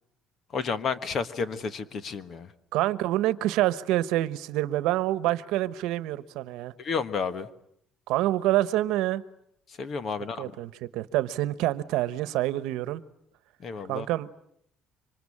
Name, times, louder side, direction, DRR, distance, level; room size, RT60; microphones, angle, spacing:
voice 1, 0.5-2.5 6.8-7.5 9.7-10.5 13.6-14.1, left 5 dB, 35° left, 1.4 m, -31 dB
voice 2, 2.7-6.7 8.1-9.2 10.4-13.0 13.9-14.3, right 15 dB, 85° right, 1.1 m, -27 dB
26.5 x 25.0 x 8.6 m
cardioid pair, 175°, 0 cm